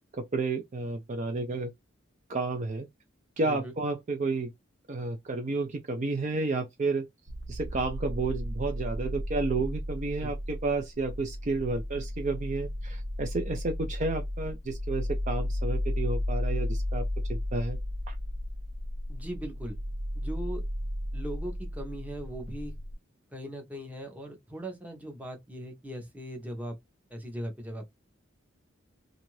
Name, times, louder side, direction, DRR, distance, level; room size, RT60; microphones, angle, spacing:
voice 1, 0.2-1.7 2.3-2.9 3.4-4.5 4.9-7.1 7.5-17.8 18.1-18.2, right 3 dB, 35° right, 0.4 m, -31 dB
voice 2, 3.4-3.7 10.2-10.3 11.6-11.7 19.1-19.8 20.1-20.6 21.1-22.7 23.3-26.8 27.1-27.9, equal, 10° right, 0.7 m, -39 dB
sound 1, 7.3-22.9, left 1 dB, 75° right, 0.6 m, -34 dB
2.6 x 2.4 x 3.0 m
head